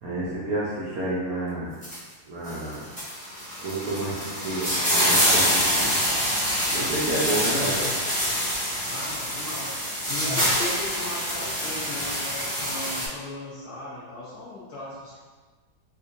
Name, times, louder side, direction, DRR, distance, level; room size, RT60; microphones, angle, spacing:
voice 1, 0.0-1.8 2.2-2.8 3.6-5.9 6.7-7.8, right 2 dB, 70° right, -8 dB, 0.8 m, -30 dB
sound 1, 1.8-2.0 2.5-13.1, equal, 5° left, 0.6 m, -26 dB
sound 2, 7.4-7.9 10.2-10.9, left 3 dB, 85° left, 1.6 m, -35 dB
voice 2, 7.4-8.0 8.9-15.2, left 2 dB, 65° left, -8 dB, 1.1 m, -37 dB
4.7 x 2.3 x 2.6 m, 1.4 s
omnidirectional pair, 2.3 m